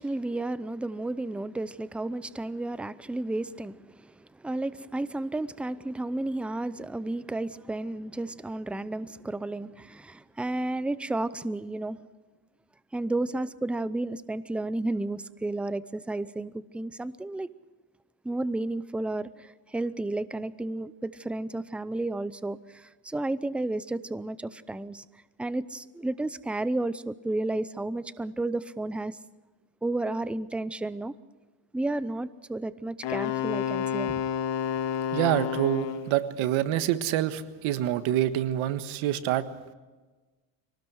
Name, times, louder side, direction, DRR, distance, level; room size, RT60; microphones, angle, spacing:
voice 1, 0.0-12.0 12.9-17.5 18.2-25.0 25.4-29.2 29.8-31.1 31.7-34.1, right 2 dB, ahead, 0.6 m, -32 dB
Wind instrument woodwind instrument, 33.0-36.2, left 9 dB, 60° left, 1.8 m, -30 dB
voice 2, 35.1-39.5, right 12 dB, 70° right, 1.6 m, -26 dB
24.0 x 18.5 x 6.3 m
cardioid pair, 110°, 50 cm